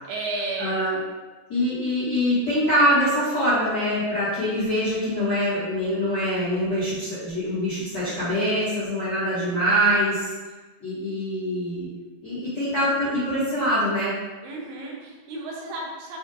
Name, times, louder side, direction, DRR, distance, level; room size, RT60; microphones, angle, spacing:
voice 1, 0.1-0.8 14.4-16.2, right 2 dB, 90° right, -2 dB, 2.6 m, -32 dB
voice 2, 0.6-1.0 1.5-10.3 10.8-11.9 12.2-14.1, equal, 50° left, -13 dB, 1.4 m, -24 dB
6.9 x 2.5 x 2.6 m, 1.3 s
omnidirectional pair, 4.0 m